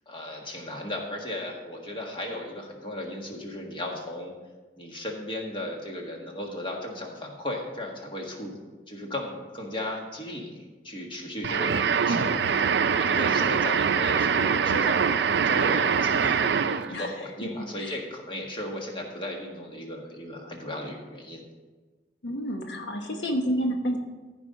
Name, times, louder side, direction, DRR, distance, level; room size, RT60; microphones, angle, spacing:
voice 1, 0.1-4.3 4.8-8.5 8.9-12.6 12.9-15.0 15.4-21.4, left 1 dB, 30° left, 0 dB, 1.6 m, -35 dB
sound 1, 11.4-16.9, right 6 dB, 70° right, 0.4 m, -23 dB
voice 2, 22.2-24.0, equal, 80° left, 3 dB, 1.0 m, -29 dB
14.0 x 5.3 x 5.3 m, 1.3 s
head